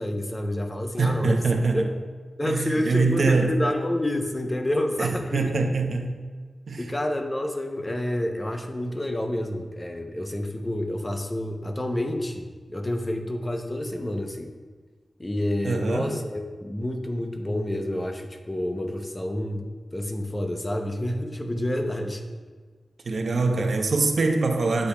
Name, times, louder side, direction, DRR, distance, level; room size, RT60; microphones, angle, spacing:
voice 1, 0.0-1.4 1.7-1.8 2.4-5.5 6.8-14.5 15.2-22.2, left 1 dB, 20° left, 4 dB, 0.7 m, -29 dB
voice 2, 1.0-1.9 2.4-3.5 5.0-6.2 6.7-6.9 15.6-16.2 23.1-24.9, right 3 dB, 65° right, 4 dB, 0.7 m, -24 dB
8.6 x 8.2 x 2.3 m, 1.5 s
wide cardioid pair, 120°, 0 cm